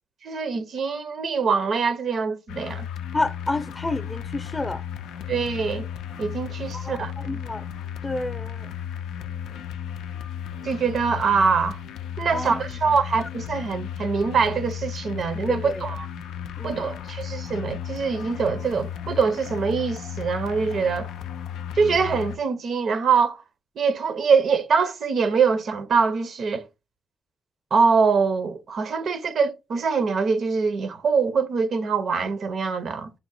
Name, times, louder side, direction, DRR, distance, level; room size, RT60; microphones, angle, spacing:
voice 1, 0.2-2.9 5.3-5.9 6.2-7.1 10.6-11.8 12.2-16.1 16.6-21.1 21.8-23.4 23.8-26.7 27.7-33.1, right 5 dB, 65° right, 0.6 m, -23 dB
sound 1, 2.5-22.4, left 9 dB, 90° left, 0.3 m, -34 dB
voice 2, 3.1-4.8 6.7-7.6 8.0-8.7 12.3-12.8 15.5-15.8 16.6-16.9, left 2 dB, 25° left, 0.6 m, -30 dB
3.6 x 2.0 x 3.9 m
cardioid pair, 65°, 0 cm